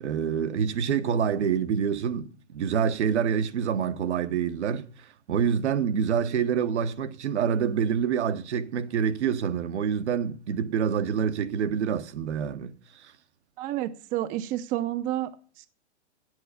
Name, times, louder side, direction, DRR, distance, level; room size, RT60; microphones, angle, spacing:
voice 1, 0.0-13.1, right 7 dB, 75° right, 1.2 m, -27 dB
voice 2, 13.6-15.7, right 13 dB, 25° right, 0.6 m, -30 dB
9.0 x 8.0 x 8.1 m
hypercardioid pair, 135°, 34 cm